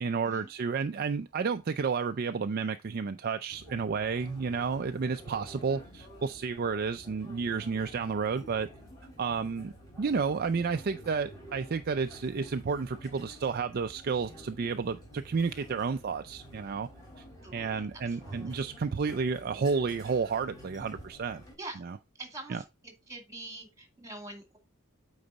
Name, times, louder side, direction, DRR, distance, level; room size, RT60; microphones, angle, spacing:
voice 1, 0.0-8.7 9.2-16.9 17.5-21.4 21.8-22.0 22.5-22.6, right 5 dB, 45° right, 0.4 m, -31 dB
sound 1, 3.5-21.6, equal, 15° left, 3.6 m, -50 dB
sound 2, 4.6-20.8, right 2 dB, 35° left, 3.9 m, -62 dB
voice 2, 17.4-18.7 21.6-21.8 22.2-24.6, right 2 dB, 15° right, 2.2 m, -45 dB
8.8 x 4.0 x 4.0 m
head